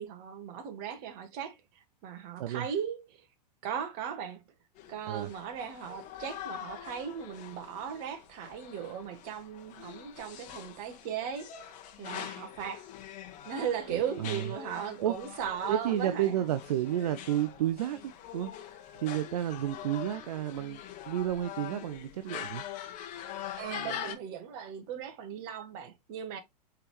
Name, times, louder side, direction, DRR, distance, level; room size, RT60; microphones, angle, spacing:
voice 1, 0.0-1.6 2.0-3.2 3.6-4.4 4.9-11.7 12.0-12.8 13.4-16.3 23.6-26.4, right 8 dB, 45° right, 1.3 m, -37 dB
voice 2, 2.4-2.7 5.1-5.3 13.9-14.5 15.0-15.1 15.7-18.5 18.9-20.8 21.1-22.6, right 12 dB, 65° right, 0.5 m, -31 dB
sound 1, 4.8-24.1, left 10 dB, 35° left, 1.1 m, -44 dB
4.7 x 3.5 x 3.1 m
hypercardioid pair, 105°, 21 cm